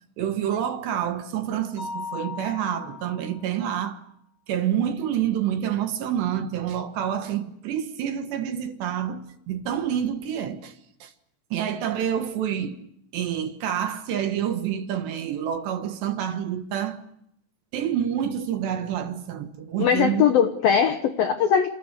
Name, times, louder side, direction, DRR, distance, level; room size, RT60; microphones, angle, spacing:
voice 1, 0.2-4.0 4.5-11.1 11.5-12.8 13.1-17.0 17.7-20.3, right 9 dB, 65° right, 3.1 m, -28 dB
Mallet percussion, 1.8-3.6, left 5 dB, 30° right, 6.7 m, -37 dB
voice 2, 19.8-21.7, left 8 dB, 80° left, 2.0 m, -20 dB
29.0 x 29.0 x 6.7 m
omnidirectional pair, 6.0 m